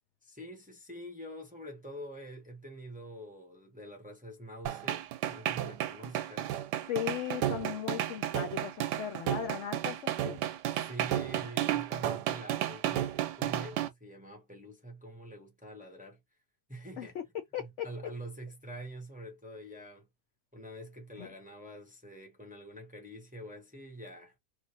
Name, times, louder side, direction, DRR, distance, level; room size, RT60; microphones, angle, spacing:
voice 1, 0.2-6.6 10.8-16.2 16.7-17.1 17.6-20.1 20.5-24.3, right 1 dB, 5° right, 0.7 m, -46 dB
sound 1, 4.7-13.9, right 12 dB, 90° right, 1.2 m, -32 dB
voice 2, 6.9-10.4 17.0-17.2 17.5-17.9 21.2-21.3, left 10 dB, 80° left, 0.6 m, -37 dB
3.3 x 2.5 x 2.8 m
omnidirectional pair, 1.8 m